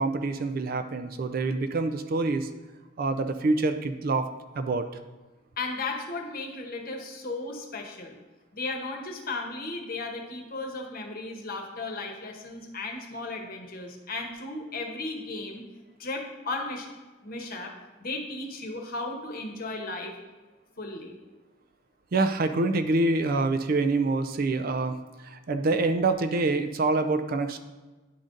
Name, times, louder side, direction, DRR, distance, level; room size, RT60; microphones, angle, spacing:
voice 1, 0.0-2.5 3.0-4.3 4.6-4.9 22.1-27.6, right 3 dB, 50° right, 8 dB, 0.4 m, -26 dB
voice 2, 5.6-8.2 8.5-15.6 16.0-16.9 17.2-17.7 18.0-20.1 20.8-21.1, left 3 dB, 50° left, 2 dB, 1.0 m, -35 dB
10.0 x 3.8 x 3.8 m, 1.2 s
head